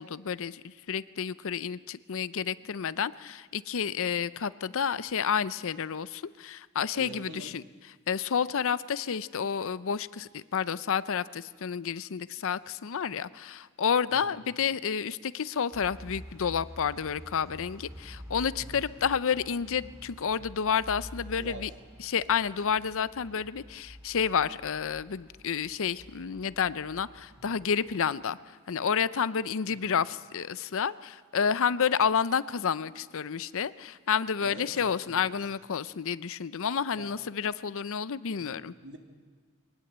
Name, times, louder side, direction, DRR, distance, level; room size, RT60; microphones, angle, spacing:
voice 1, 0.0-7.6 8.1-21.7 22.0-38.7, left 7 dB, 65° left, 17 dB, 0.6 m, -30 dB
voice 2, 6.9-7.6 14.1-14.3 18.5-18.8 21.4-21.7 29.7-29.9 34.4-35.5 36.9-37.1 38.3-39.0, right 1 dB, 60° right, 4 dB, 2.6 m, -46 dB
sound 1, 15.7-28.0, equal, 15° right, 6.5 m, -48 dB
23.0 x 19.0 x 8.0 m, 1.5 s
head